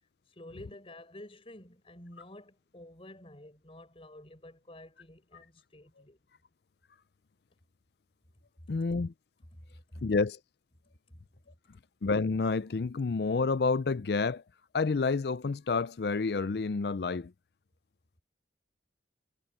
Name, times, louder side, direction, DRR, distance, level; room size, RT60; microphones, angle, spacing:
voice 1, 0.3-6.2 9.5-10.0 11.1-11.2 11.4-11.5, left 1 dB, 30° left, 5.2 m, -50 dB
voice 2, 8.7-9.1 10.0-10.4 12.0-14.4 14.7-17.3, left 4 dB, 60° left, 0.5 m, -29 dB
head